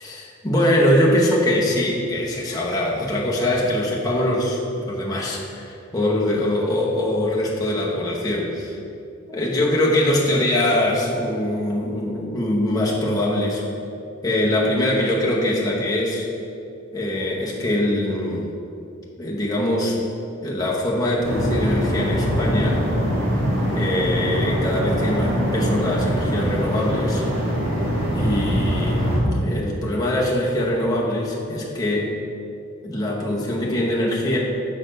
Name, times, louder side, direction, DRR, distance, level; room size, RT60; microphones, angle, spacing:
voice 1, 0.0-4.6 4.9-8.8 9.3-13.6 14.2-16.3 16.9-18.5 19.2-20.0 20.4-22.8 23.7-27.2 28.1-32.1 32.8-34.4, left 1 dB, 20° left, -4 dB, 0.8 m, -22 dB
sound 1, 21.2-29.2, equal, 90° right, 1.4 m, -23 dB
6.5 x 4.1 x 5.1 m, 2.6 s
head